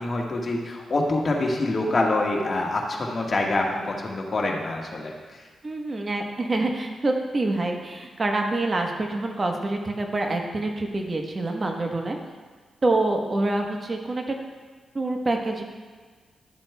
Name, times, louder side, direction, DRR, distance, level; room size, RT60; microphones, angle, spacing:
voice 1, 0.0-5.4, left 2 dB, 50° left, -1 dB, 1.5 m, -26 dB
voice 2, 5.6-12.2 12.8-14.4 14.9-15.6, right 2 dB, 45° right, 2 dB, 1.1 m, -26 dB
12.0 x 7.3 x 2.3 m, 1.5 s
supercardioid pair, 45°, 0 cm